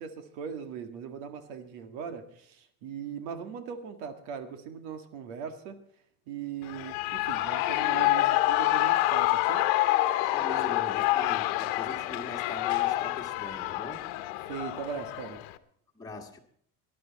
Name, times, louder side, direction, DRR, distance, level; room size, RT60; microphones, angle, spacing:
voice 1, 0.0-5.8 6.3-9.7 14.4-15.4, right 7 dB, 85° right, 2.1 m, -39 dB
Shout / Cheering, 6.6-15.6, left 16 dB, 75° left, 1.1 m, -27 dB
voice 2, 10.3-14.1 15.9-16.4, left 3 dB, 10° left, 1.7 m, -41 dB
19.0 x 11.0 x 4.2 m
cardioid pair, 180°, 39 cm